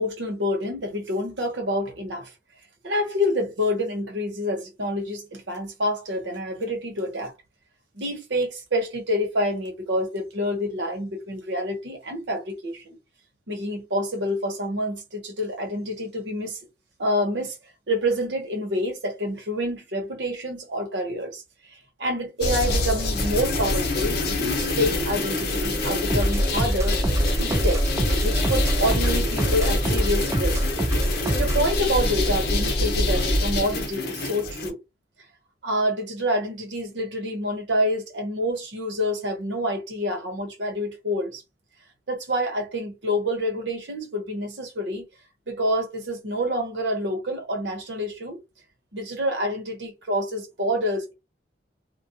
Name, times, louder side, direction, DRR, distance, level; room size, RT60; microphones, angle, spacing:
voice 1, 0.0-2.3 2.8-7.3 7.9-13.0 13.5-16.6 17.0-17.6 17.9-21.4 22.0-27.8 28.2-30.6 31.4-34.8 35.6-41.4 42.1-45.1 45.5-48.4 48.9-51.1, equal, 80° right, 1.0 m, -27 dB
sound 1, 22.4-34.7, left 2 dB, 60° left, 0.7 m, -26 dB
sound 2, 26.1-31.7, right 1 dB, 15° right, 0.4 m, -24 dB
2.3 x 2.3 x 2.7 m
head